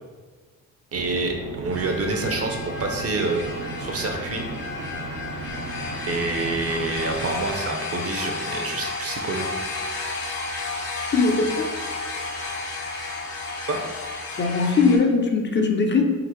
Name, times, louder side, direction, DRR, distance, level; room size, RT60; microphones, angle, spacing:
voice 1, 0.9-4.4 6.1-9.6 13.7-13.8, right 3 dB, 45° right, 3 dB, 0.7 m, -27 dB
sound 1, 0.9-7.5, right 3 dB, 80° right, 0.7 m, -36 dB
sound 2, 1.7-15.0, left 3 dB, 75° left, 1.1 m, -32 dB
voice 2, 11.1-11.7 14.4-16.0, left 4 dB, 30° left, 3 dB, 0.6 m, -20 dB
3.9 x 2.5 x 4.4 m, 1.3 s
cardioid pair, 95°, 35 cm